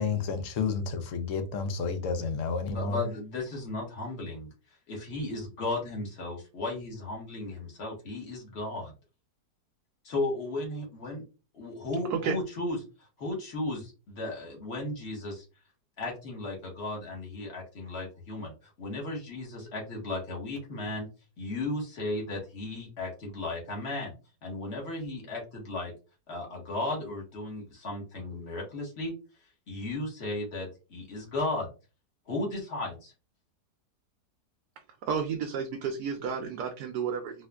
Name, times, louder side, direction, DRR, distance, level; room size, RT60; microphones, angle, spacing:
voice 1, 0.0-3.0, left 5 dB, 65° left, 0.8 m, -30 dB
voice 2, 2.7-4.5 4.9-8.9 10.0-11.2 11.5-12.8 13.2-15.4 16.0-21.1 21.4-24.1 24.4-25.9 26.3-29.1 29.7-31.7 32.3-33.1, left 2 dB, 40° left, 1.5 m, -35 dB
voice 3, 35.0-37.5, right 6 dB, 75° right, 1.1 m, -31 dB
4.2 x 2.5 x 2.3 m
omnidirectional pair, 1.7 m